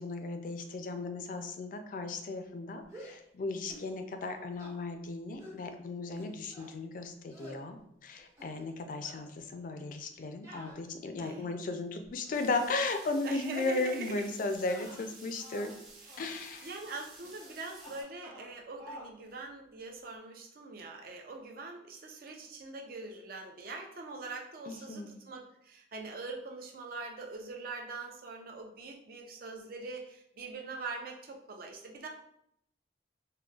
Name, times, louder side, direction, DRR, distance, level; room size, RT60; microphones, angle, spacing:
voice 1, 0.0-15.7 16.2-16.7 24.7-25.1, left 3 dB, 50° left, 7 dB, 0.3 m, -36 dB
sound 1, 2.8-3.3 3.7-3.9 4.2-4.8 5.4-5.6 6.2-6.7 7.3-7.6 8.2-8.8 9.0-9.3 10.4-11.5 12.0-12.5 13.2-13.4 13.8-14.0 14.5-15.8 16.1-16.3 17.2-17.5 17.8-18.5 18.8-19.1, equal, 20° right, 0.8 m, -50 dB
sound 2, 12.3-18.0, right 2 dB, 85° right, 1.0 m, -53 dB
voice 2, 13.2-14.3 16.1-16.2 16.6-32.1, right 3 dB, 55° right, 2 dB, 0.5 m, -43 dB
3.7 x 2.2 x 2.3 m, 0.73 s
head